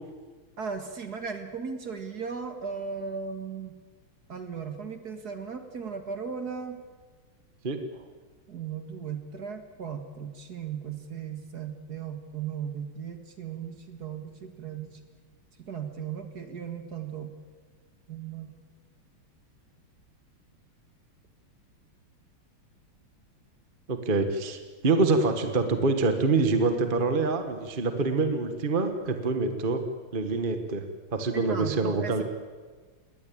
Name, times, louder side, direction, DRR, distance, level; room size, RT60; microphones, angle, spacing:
voice 1, 0.6-3.7 4.3-6.8 8.5-15.0 15.7-17.3 18.1-18.5 31.3-32.2, right 6 dB, 50° right, 7 dB, 2.2 m, -36 dB
voice 2, 7.6-8.0 23.9-29.8 30.1-30.9 31.1-32.2, right 3 dB, 25° right, 7 dB, 1.6 m, -26 dB
21.5 x 18.5 x 8.7 m, 1.4 s
omnidirectional pair, 2.2 m